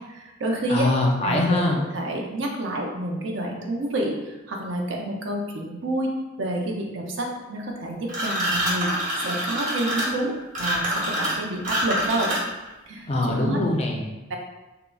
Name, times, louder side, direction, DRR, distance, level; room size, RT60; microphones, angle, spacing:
voice 1, 0.1-0.9 1.2-1.4 1.9-6.1 6.4-8.9 9.2-12.3 12.9-13.6 14.3-14.4, right 1 dB, 70° right, 1 dB, 0.5 m, -28 dB
voice 2, 0.7-1.9 13.1-14.2, left 2 dB, 30° left, 0 dB, 0.4 m, -23 dB
sound 1, 8.1-12.7, equal, 40° right, 0.8 m, -26 dB
3.6 x 2.0 x 2.2 m, 1.1 s
head